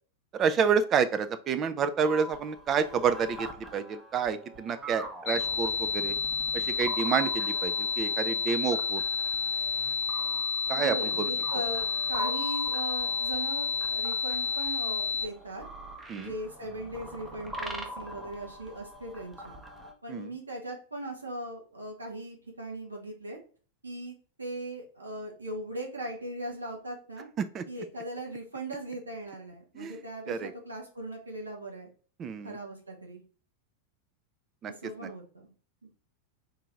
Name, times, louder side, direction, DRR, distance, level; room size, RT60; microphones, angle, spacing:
voice 1, 0.3-6.2 6.5-9.0 10.7-11.3 16.1-16.3 20.1-20.3 27.4-27.6 29.7-30.0 30.3-30.5 32.2-32.6 34.6-34.7, right 6 dB, 30° right, 10 dB, 0.4 m, -29 dB
sound 1, 2.0-19.9, equal, 10° right, 0.7 m, -43 dB
sound 2, 5.3-15.3, left 5 dB, 45° left, 0.4 m, -30 dB
voice 2, 10.7-15.6 16.1-19.6 20.0-23.4 23.8-27.3 27.7-31.9 32.4-33.2 34.6-35.5, right 1 dB, 80° right, 0 dB, 1.1 m, -39 dB
3.9 x 2.8 x 3.4 m, 0.41 s
figure-of-eight pair, 90°, 0 cm